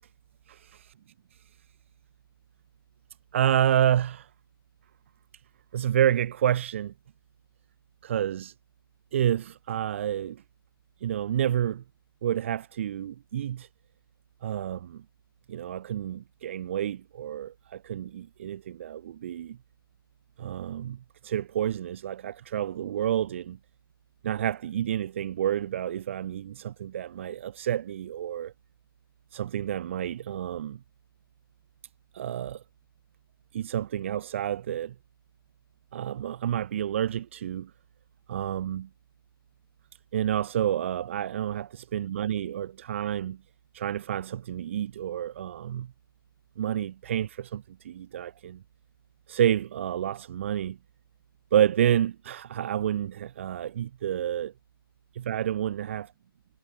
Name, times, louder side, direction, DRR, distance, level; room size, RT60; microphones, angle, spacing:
voice 1, 3.3-4.3 5.7-6.9 8.0-8.5 9.1-10.4 11.0-11.8 12.2-13.7 14.4-15.0 15.5-19.6 20.4-23.6 24.2-28.5 29.3-30.8 32.1-32.6 33.5-34.9 35.9-37.7 38.3-38.9 40.1-43.4 43.7-45.9 46.6-48.6 49.3-50.8 51.5-54.5 55.3-56.1, right 10 dB, 30° right, 4.6 m, -29 dB
figure-of-eight pair, 160°, 13 cm